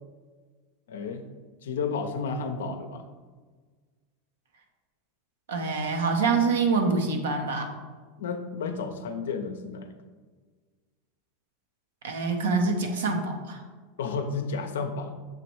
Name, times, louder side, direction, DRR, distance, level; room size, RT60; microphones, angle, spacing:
voice 1, 0.9-1.3 1.6-3.1 8.2-10.0 14.0-15.1, left 4 dB, 85° left, 7 dB, 0.6 m, -32 dB
voice 2, 5.5-7.7 12.0-13.6, right 4 dB, 85° right, 4 dB, 0.9 m, -25 dB
6.8 x 3.0 x 4.5 m, 1.4 s
hypercardioid pair, 100°, 0 cm